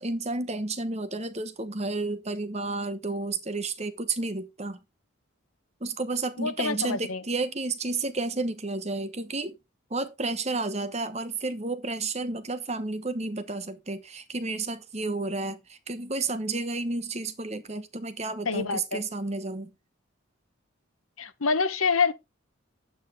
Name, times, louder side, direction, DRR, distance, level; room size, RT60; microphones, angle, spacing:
voice 1, 0.0-4.8 5.8-9.5 9.9-19.7, right 3 dB, 30° right, 1.1 m, -31 dB
voice 2, 6.4-7.2 18.4-19.0 21.2-22.1, left 4 dB, 85° left, 1.3 m, -26 dB
10.5 x 8.4 x 3.6 m
head